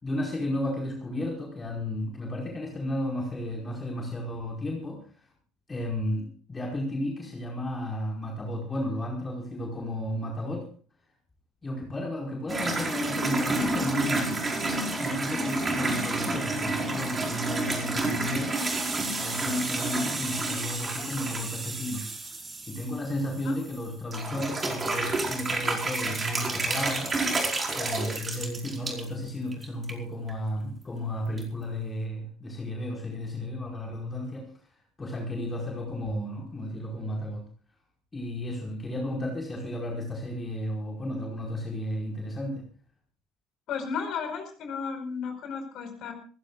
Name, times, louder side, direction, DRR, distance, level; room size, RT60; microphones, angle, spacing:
voice 1, 0.0-5.3 5.7-10.6 11.6-14.4 15.0-18.6 18.9-22.4 22.7-27.1 27.7-37.4 38.1-42.6, left 1 dB, 20° left, -1 dB, 5.0 m, -33 dB
sound 1, 12.5-23.8 24.1-29.0 29.5-29.9 30.3-30.4 31.4-31.5, right 2 dB, 25° right, 4.9 m, -30 dB
voice 2, 43.7-46.1, left 6 dB, 50° left, 6 dB, 4.8 m, -34 dB
26.5 x 16.0 x 2.5 m, 0.40 s
figure-of-eight pair, 65°, 0 cm